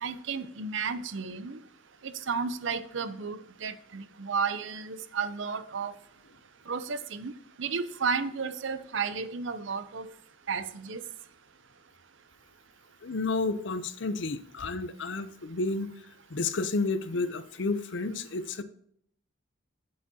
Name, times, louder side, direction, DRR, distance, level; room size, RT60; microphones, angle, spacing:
voice 1, 0.0-1.6 2.0-5.9 6.7-7.3 7.6-10.1 10.5-11.0, right 5 dB, 60° right, 13 dB, 0.6 m, -33 dB
voice 2, 13.0-15.9 16.3-18.6, left 3 dB, 55° left, 12 dB, 0.6 m, -31 dB
8.6 x 8.1 x 2.8 m, 0.67 s
head